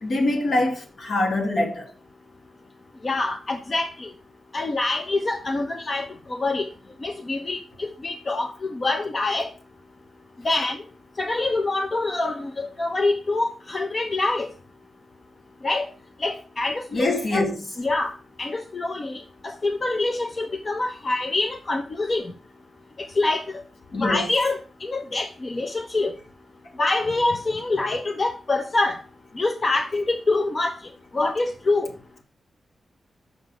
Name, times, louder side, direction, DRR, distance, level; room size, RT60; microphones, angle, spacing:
voice 1, 0.0-1.9 16.9-17.7 23.9-24.3, left 2 dB, 65° left, 1.9 m, -24 dB
voice 2, 3.0-4.1 4.5-6.7 7.0-9.5 10.4-10.8 11.2-14.5 15.6-15.9 16.2-17.4 17.8-18.1 18.4-22.2 23.2-23.4 24.0-26.1 26.8-29.0 29.4-30.7 31.1-31.9, left 2 dB, 45° left, 0.8 m, -25 dB
6.3 x 5.7 x 4.9 m
cardioid pair, 55°, 0 cm